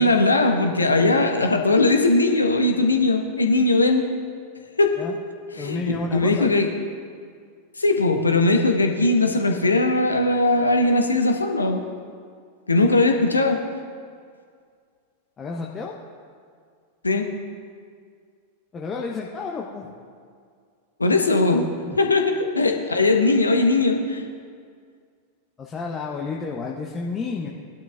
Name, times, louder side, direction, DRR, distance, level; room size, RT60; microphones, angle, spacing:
voice 1, 0.0-4.0 4.8-5.0 5.5-6.7 7.8-11.8 12.7-13.6 17.0-17.3 21.0-21.7 22.0-24.2, left 2 dB, 80° left, 4 dB, 1.0 m, -19 dB
voice 2, 5.6-6.6 15.4-15.9 18.7-19.9 21.8-22.0 25.6-27.5, left 4 dB, 20° left, -2 dB, 0.9 m, -31 dB
18.0 x 11.5 x 2.4 m, 2.1 s
figure-of-eight pair, 90°, 0 cm